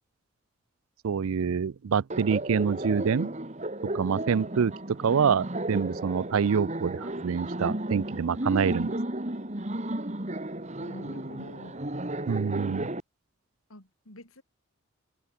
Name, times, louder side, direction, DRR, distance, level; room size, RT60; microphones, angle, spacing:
voice 1, 1.0-3.3 3.9-9.0 12.3-12.9, right 6 dB, 75° right, 0.4 m, -26 dB
Laughter, 2.1-13.0, right 1 dB, 35° right, 2.3 m, -34 dB
voice 2, 5.1-5.4 10.8-11.9 13.7-14.4, left 1 dB, 80° left, 7.9 m, -47 dB
head